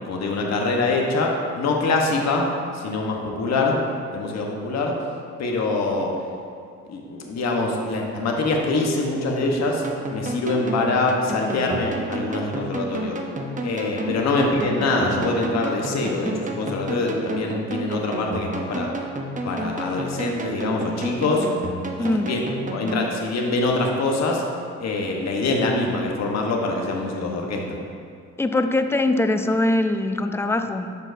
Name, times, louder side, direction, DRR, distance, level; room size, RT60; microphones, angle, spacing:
voice 1, 0.1-2.5 2.7-3.8 4.1-4.9 5.4-6.1 6.9-9.8 10.1-13.2 13.6-18.9 19.4-21.5 22.0-22.4 22.7-24.4 24.8-27.8, left 2 dB, 60° left, 0 dB, 1.1 m, -24 dB
sound 1, 9.8-23.1, right 1 dB, 25° right, 0.8 m, -31 dB
voice 2, 22.0-22.3 28.4-31.0, left 2 dB, 10° left, 8 dB, 0.3 m, -22 dB
11.5 x 4.5 x 2.7 m, 2.4 s
cardioid pair, 90°, 30 cm